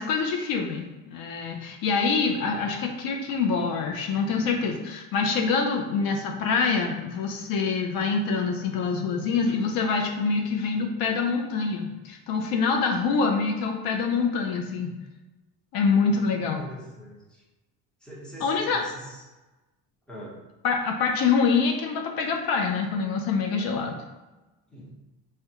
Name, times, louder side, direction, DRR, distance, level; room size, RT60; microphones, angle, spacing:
voice 1, 0.0-14.9 15.7-16.7 18.4-18.9 20.6-24.0, left 5 dB, 65° left, 3 dB, 0.5 m, -25 dB
voice 2, 16.3-17.4 18.0-19.2 20.1-20.4 24.7-25.0, right 1 dB, ahead, -5 dB, 0.8 m, -43 dB
3.5 x 2.2 x 2.8 m, 1.1 s
cardioid pair, 125°, 38 cm